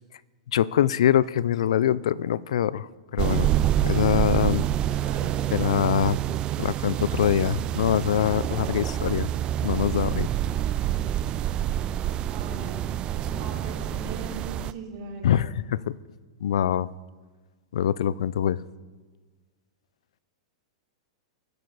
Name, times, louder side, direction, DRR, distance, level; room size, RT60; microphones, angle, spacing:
voice 1, 0.5-3.5 3.8-4.7 5.5-6.2 6.6-9.3 9.6-10.3 15.2-16.0 16.4-16.9 17.7-18.6, left 10 dB, 80° left, 0.4 m, -24 dB
sound 1, 3.2-14.7, right 12 dB, 30° right, 0.3 m, -27 dB
voice 2, 5.1-5.4 12.3-12.9 13.4-15.5, right 3 dB, 50° right, 3.5 m, -40 dB
19.0 x 6.7 x 4.0 m
hypercardioid pair, 130°, 3 cm